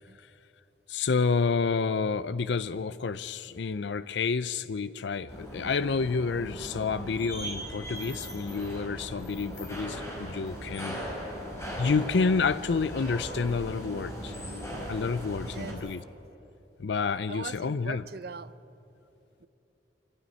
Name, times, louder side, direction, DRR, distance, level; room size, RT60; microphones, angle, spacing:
voice 1, 0.9-11.0 11.8-14.3 14.9-16.0 16.8-18.0, left 4 dB, 70° left, 15 dB, 0.5 m, -29 dB
sound 1, 5.3-15.7, equal, 15° left, 5.0 m, -38 dB
voice 2, 15.5-15.8 17.3-18.6 19.4-19.5, right 4 dB, 55° right, 15 dB, 0.6 m, -41 dB
23.5 x 16.0 x 9.8 m, 2.9 s
head